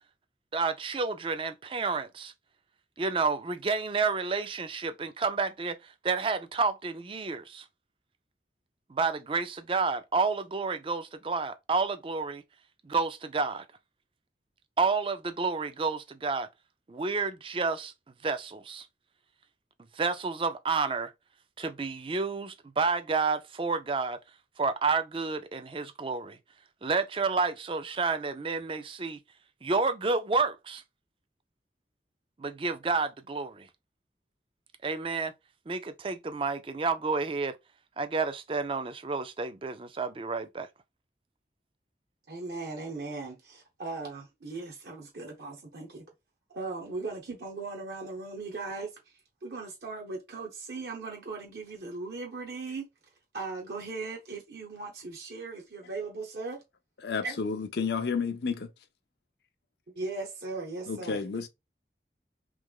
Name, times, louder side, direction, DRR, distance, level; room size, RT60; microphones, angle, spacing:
voice 1, 0.5-2.3 3.0-7.6 8.9-12.4 12.8-13.6 14.8-16.5 16.9-17.9 18.2-18.9 19.9-21.1 21.6-24.2 24.6-26.4 26.8-29.2 29.6-30.8 32.4-33.7 34.8-35.3 35.7-37.5 38.0-40.7, right 4 dB, 30° right, 0.4 m, -30 dB
voice 2, 42.3-46.0 46.5-49.1 49.4-52.9 53.3-56.6 57.2-57.4 59.9-61.2, right 3 dB, 65° right, 0.9 m, -38 dB
voice 3, 57.0-58.7 60.9-61.5, left 5 dB, 65° left, 0.5 m, -31 dB
3.2 x 3.0 x 3.6 m
head